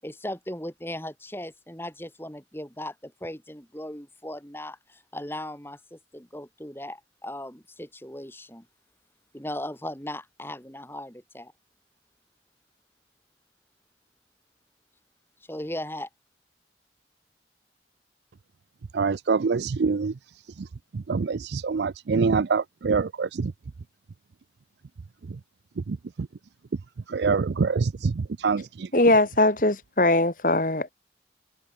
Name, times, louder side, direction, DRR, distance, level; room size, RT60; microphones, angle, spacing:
voice 1, 0.0-8.7 9.3-11.5 15.5-16.1, left 1 dB, 15° left, 5.7 m, -37 dB
voice 2, 18.9-20.1 20.6-20.7 20.9-23.5 25.8-26.3 27.1-28.9, right 5 dB, 75° right, 0.5 m, -25 dB
voice 3, 28.9-30.9, left 2 dB, 50° left, 2.0 m, -21 dB
open air
head